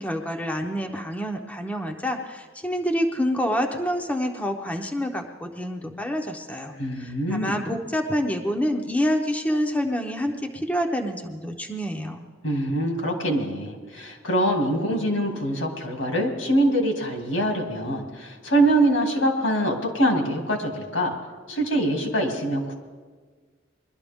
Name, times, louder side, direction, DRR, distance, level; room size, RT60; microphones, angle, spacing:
voice 1, 0.0-12.2, equal, 5° left, 3 dB, 0.7 m, -27 dB
voice 2, 6.8-7.5 12.4-21.2 21.5-22.7, right 1 dB, 85° left, 2 dB, 2.5 m, -24 dB
21.5 x 12.0 x 3.6 m, 1.5 s
head